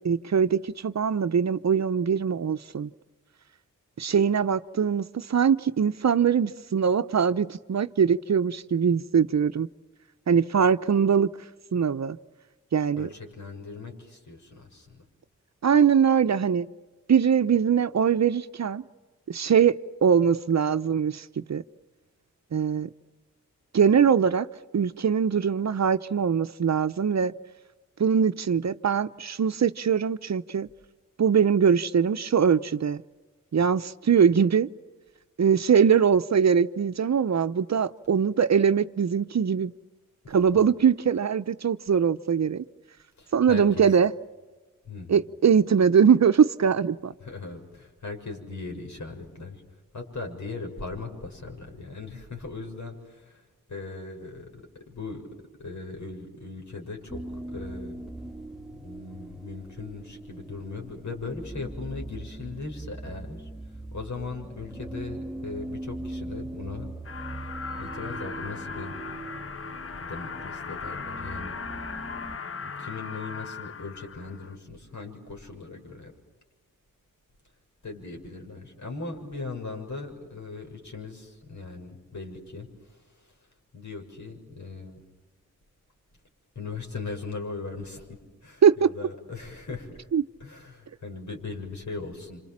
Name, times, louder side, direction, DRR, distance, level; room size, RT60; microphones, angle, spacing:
voice 1, 0.0-2.9 4.0-9.7 10.3-11.3 11.7-12.2 12.7-13.1 15.6-16.7 17.1-18.8 19.3-21.6 22.5-22.9 23.7-24.5 24.7-27.3 28.0-30.7 31.2-33.0 33.5-34.7 35.4-39.7 40.3-42.6 43.3-44.1 45.1-47.1 88.6-88.9 90.1-90.2, right 7 dB, 55° right, 0.8 m, -22 dB
voice 2, 13.0-15.0 40.2-40.7 43.2-44.0 44.8-45.2 47.2-49.6 49.9-55.2 55.6-58.0 58.8-63.5 63.9-66.9 67.8-68.9 70.1-71.5 72.6-76.1 77.8-83.3 83.7-85.0 86.5-90.1 90.4-92.4, left 3 dB, 60° left, 6.9 m, -39 dB
sound 1, 57.1-72.4, right 2 dB, ahead, 1.6 m, -40 dB
sound 2, 67.0-74.6, left 5 dB, 45° left, 1.1 m, -38 dB
27.5 x 27.5 x 7.4 m
cardioid pair, 55°, 32 cm